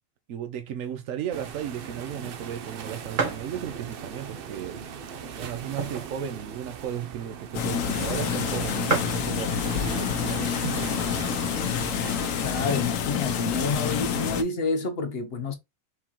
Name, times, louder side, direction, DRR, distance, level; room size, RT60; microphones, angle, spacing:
voice 1, 0.3-4.8 5.3-10.9, right 9 dB, 85° right, 1.1 m, -35 dB
sound 1, 1.3-12.8, right 7 dB, 55° right, 0.7 m, -38 dB
sound 2, 3.1-3.5 4.2-4.3 5.1-6.2 6.6-6.7 6.9-7.1 7.9-8.0 8.2-8.3 8.6-8.7 8.9-9.3 10.2-10.5 11.0-11.1 11.3-12.1, right 4 dB, 40° right, 1.1 m, -30 dB
sound 3, 7.5-14.4, left 8 dB, 85° left, 1.1 m, -28 dB
voice 2, 12.4-15.5, left 3 dB, 55° left, 0.9 m, -28 dB
4.5 x 3.7 x 2.9 m
omnidirectional pair, 1.3 m